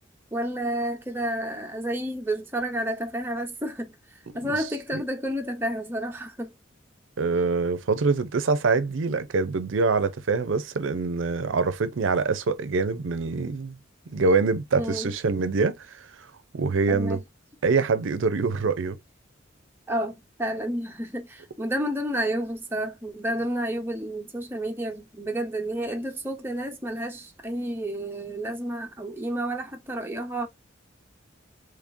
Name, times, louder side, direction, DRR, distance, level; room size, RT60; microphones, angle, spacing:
voice 1, 0.3-6.5 14.8-15.1 16.9-17.2 19.9-30.5, right 1 dB, 10° right, 0.7 m, -30 dB
voice 2, 7.2-13.8 14.1-16.3 16.5-17.2 17.6-19.0, right 4 dB, 75° right, 0.5 m, -25 dB
3.6 x 3.2 x 2.6 m
head